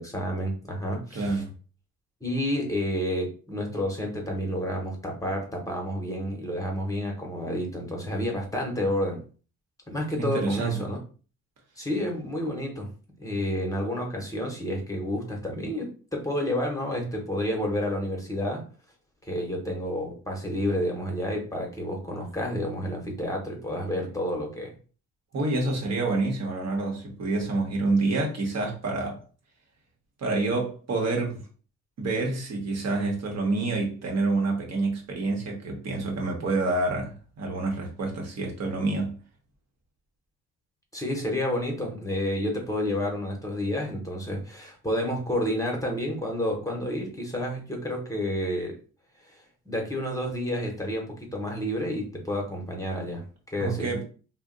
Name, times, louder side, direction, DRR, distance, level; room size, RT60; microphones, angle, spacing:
voice 1, 0.0-1.4 2.2-9.2 9.9-11.0 11.8-12.9 13.2-18.6 19.3-24.7 40.9-48.8 49.3-53.9, left 1 dB, 10° left, 0.9 m, -30 dB
voice 2, 1.1-1.5 10.2-10.9 25.3-29.2 30.2-31.4 32.0-39.2 53.6-54.0, right 3 dB, 60° right, 1.0 m, -27 dB
2.5 x 2.1 x 3.7 m
cardioid pair, 90°, 30 cm